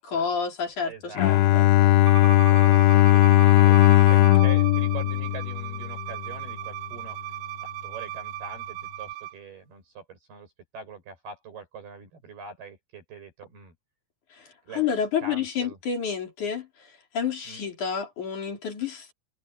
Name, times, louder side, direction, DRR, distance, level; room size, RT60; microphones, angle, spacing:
voice 1, 0.0-1.7 14.3-19.1, left 6 dB, 45° left, 4.6 m, -30 dB
voice 2, 0.8-3.8 4.1-7.2 7.6-13.7 14.6-14.8 15.2-15.8 17.5-17.6, right 4 dB, 55° right, 9.5 m, -43 dB
Bowed string instrument, 1.2-6.1, left 15 dB, 80° left, 2.4 m, -18 dB
Bowed string instrument 2, 2.1-9.3, right 15 dB, 75° right, 4.0 m, -37 dB
omnidirectional pair, 5.4 m